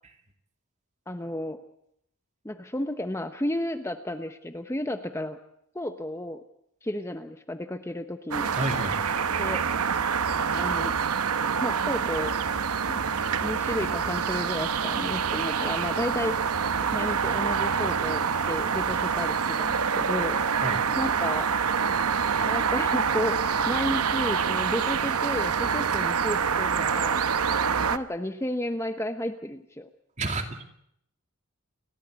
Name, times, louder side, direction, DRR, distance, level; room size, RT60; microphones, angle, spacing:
voice 1, 1.1-1.6 2.4-5.4 5.7-6.4 6.8-8.5 9.3-9.6 10.5-11.0 11.6-13.0 13.4-16.4 16.9-20.4 21.0-21.5 22.4-27.2 27.9-29.9, left 1 dB, 10° left, 7 dB, 0.9 m, -32 dB
sound 1, 8.3-28.0, right 6 dB, 80° right, 0.9 m, -26 dB
voice 2, 8.6-9.0 20.6-20.8 30.2-30.6, right 2 dB, 35° right, 5 dB, 2.6 m, -30 dB
29.0 x 14.0 x 8.2 m, 0.75 s
head